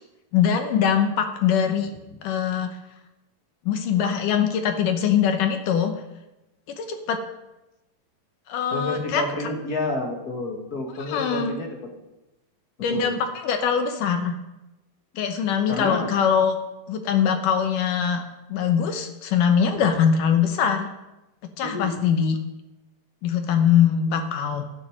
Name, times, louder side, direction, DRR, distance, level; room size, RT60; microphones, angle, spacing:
voice 1, 0.3-1.9 2.2-2.7 3.7-5.9 6.7-7.2 8.5-9.2 11.1-11.6 12.8-14.4 15.2-16.5 16.9-18.2 18.5-20.9 21.6-22.4 23.2-24.7, left 7 dB, 70° left, 6 dB, 2.2 m, -22 dB
voice 2, 8.7-11.8 12.9-13.1 15.7-16.1 21.6-21.9, left 2 dB, 40° left, 1 dB, 1.4 m, -29 dB
13.0 x 9.7 x 6.5 m, 0.97 s
omnidirectional pair, 4.8 m